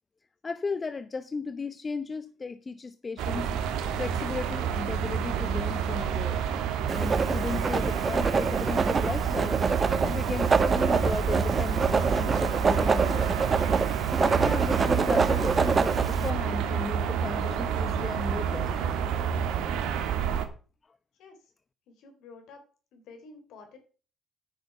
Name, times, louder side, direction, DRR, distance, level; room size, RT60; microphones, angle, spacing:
voice 1, 0.4-3.5 4.0-6.5 6.9-9.6 10.0-13.4 14.2-18.9, left 4 dB, 35° left, 0.9 m, -35 dB
sound 1, 3.2-20.5, right 8 dB, 75° right, 1.5 m, -29 dB
Writing, 6.9-16.3, right 4 dB, 40° right, 1.1 m, -26 dB
voice 2, 21.9-22.6 22.9-23.8, left 4 dB, 75° left, 3.5 m, -50 dB
9.7 x 6.4 x 6.9 m
hypercardioid pair, 60°, 0 cm